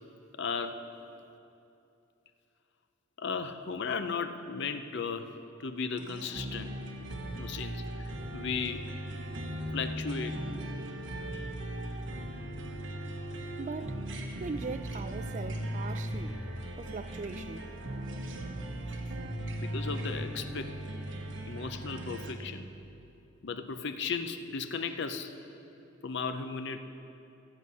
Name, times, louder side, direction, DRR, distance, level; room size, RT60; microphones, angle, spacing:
voice 1, 0.4-0.9 3.2-5.3 5.6-6.7 7.4-8.9 9.7-10.4 19.6-20.8 21.5-22.7 23.4-25.3 26.0-26.8, left 5 dB, 60° left, 0.6 m, -35 dB
sound 1, 6.0-22.3, right 1 dB, 65° right, 1.2 m, -38 dB
voice 2, 13.6-14.0 14.4-16.5 16.8-17.8, right 4 dB, 35° right, 0.4 m, -40 dB
14.5 x 7.9 x 5.5 m
head